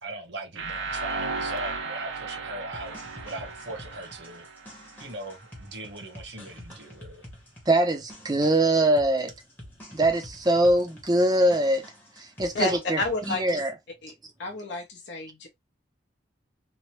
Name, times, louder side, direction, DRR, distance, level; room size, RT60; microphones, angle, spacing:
voice 1, 0.0-3.0 3.2-4.5 5.0-7.2, right 2 dB, 60° right, 0.9 m, -39 dB
sound 1, 0.6-5.4, right 3 dB, 85° right, 0.6 m, -35 dB
sound 2, 2.7-13.4, equal, 10° left, 0.8 m, -48 dB
voice 2, 7.7-9.3 9.9-11.8 12.4-13.0 13.3-13.7, right 1 dB, 20° right, 0.5 m, -22 dB
voice 3, 13.0-13.6 14.0-14.1 14.4-15.5, left 2 dB, 65° left, 0.6 m, -30 dB
3.0 x 2.0 x 2.8 m
head